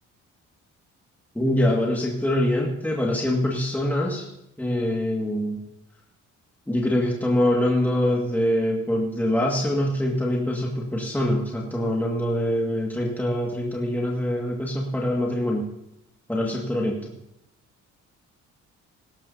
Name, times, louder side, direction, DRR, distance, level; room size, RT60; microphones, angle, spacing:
voice 1, 1.4-4.3 4.6-5.6 6.7-15.7 16.3-17.1, left 1 dB, 5° left, -1 dB, 1.9 m, -24 dB
17.0 x 15.0 x 2.8 m, 0.85 s
cardioid pair, 90°, 30 cm